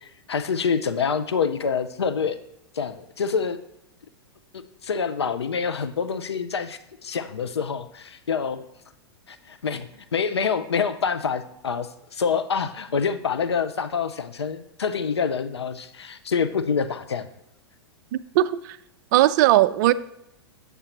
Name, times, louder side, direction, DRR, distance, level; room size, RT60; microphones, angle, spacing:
voice 1, 0.0-2.4 2.7-3.6 4.8-8.6 9.3-17.3, left 6 dB, 80° left, 0.5 m, -26 dB
voice 2, 18.1-18.8 19.1-19.9, right 15 dB, 45° right, 0.4 m, -19 dB
8.0 x 7.4 x 3.0 m
figure-of-eight pair, 100°, 14 cm